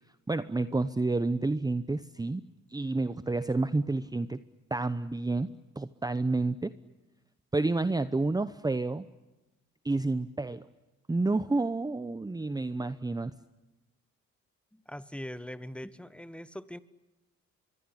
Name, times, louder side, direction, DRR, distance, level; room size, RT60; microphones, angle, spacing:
voice 1, 0.3-2.4 2.7-4.4 4.7-5.5 5.8-6.7 7.5-9.1 9.8-10.6 11.1-13.3, right 3 dB, 15° right, 13 dB, 0.9 m, -29 dB
voice 2, 14.7-16.8, equal, 5° left, 15 dB, 1.2 m, -41 dB
24.5 x 22.5 x 10.0 m, 1.1 s
cardioid pair, 90°, 30 cm